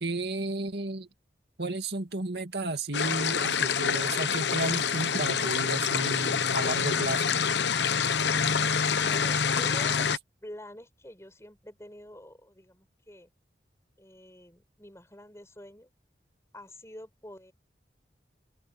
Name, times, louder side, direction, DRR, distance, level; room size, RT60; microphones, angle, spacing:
voice 1, 0.0-1.1 1.6-7.2, right 2 dB, 65° right, 2.4 m, -33 dB
sound 1, 2.9-10.2, left 6 dB, 75° left, 0.9 m, -26 dB
voice 2, 9.0-10.1 10.4-13.3 14.0-15.9 16.5-17.5, left 1 dB, 15° left, 6.2 m, -46 dB
open air
head